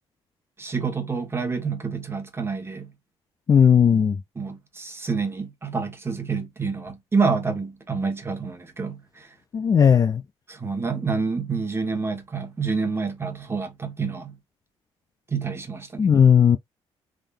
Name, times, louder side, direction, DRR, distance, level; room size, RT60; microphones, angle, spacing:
voice 1, 0.6-2.9 4.3-9.3 10.5-14.3 15.3-16.1, right 4 dB, 20° right, 1.5 m, -28 dB
voice 2, 3.5-4.2 9.5-10.2 16.0-16.6, left 7 dB, 35° left, 0.4 m, -16 dB
3.7 x 3.2 x 2.6 m
cardioid pair, 110°, 11 cm